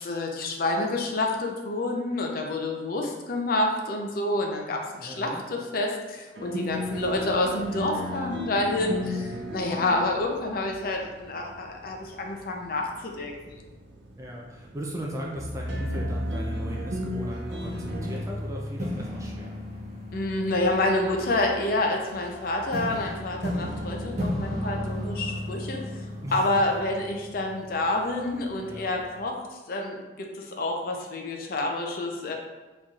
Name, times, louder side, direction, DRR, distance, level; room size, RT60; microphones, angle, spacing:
voice 1, 0.0-13.6 20.1-25.8 26.3-29.4 29.7-32.3, left 2 dB, 55° left, 1 dB, 0.5 m, -28 dB
voice 2, 5.0-5.4 8.7-9.4 14.2-19.6 26.2-26.5 28.6-29.0, equal, 20° right, -1 dB, 0.4 m, -37 dB
sound 1, 6.3-18.2, equal, 80° right, 0.5 m, -37 dB
sound 2, 15.3-29.0, left 1 dB, 40° right, 0.7 m, -34 dB
4.1 x 3.1 x 2.3 m, 1.2 s
head